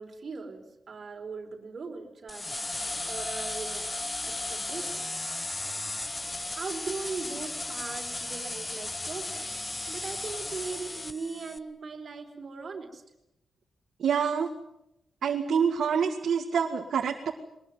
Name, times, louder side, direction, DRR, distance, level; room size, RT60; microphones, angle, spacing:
voice 1, 0.0-2.5 3.0-3.9 4.2-5.2 6.6-9.5 9.9-13.0, right 4 dB, 40° right, 3 dB, 4.3 m, -39 dB
sound 1, 2.3-11.6, left 2 dB, 20° left, 1.2 m, -35 dB
voice 2, 14.0-14.5 15.2-17.3, right 7 dB, 70° right, 2 dB, 2.0 m, -26 dB
22.5 x 20.5 x 9.4 m, 0.85 s
wide cardioid pair, 165°, 0 cm